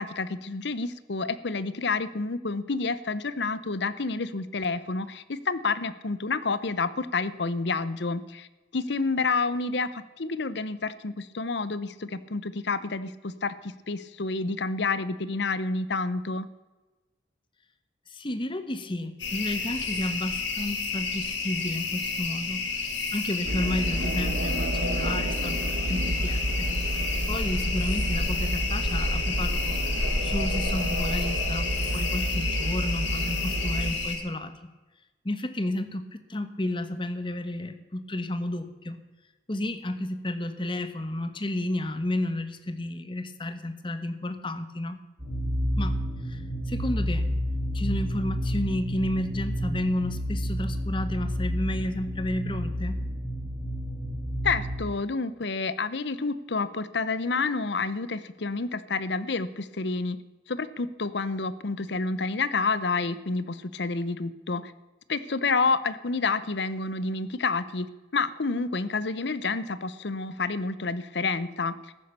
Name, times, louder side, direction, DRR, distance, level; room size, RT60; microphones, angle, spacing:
voice 1, 0.0-8.5 8.7-16.5 54.4-60.2 60.5-64.7 65.1-67.9 68.1-71.8, left 4 dB, 65° left, 16 dB, 0.8 m, -29 dB
voice 2, 18.1-22.9 23.1-26.7 27.3-29.8 30.2-34.5 35.2-39.0 39.5-45.0 45.8-46.0 46.2-47.3 47.7-53.0, left 1 dB, 25° left, 10 dB, 1.1 m, -32 dB
sound 1, 19.2-34.2, left 4 dB, 80° left, 3.2 m, -31 dB
sound 2, 23.5-33.9, right 1 dB, 65° right, 1.7 m, -30 dB
sound 3, 45.2-54.8, equal, 30° right, 5.3 m, -30 dB
14.0 x 10.5 x 6.7 m, 1.2 s
head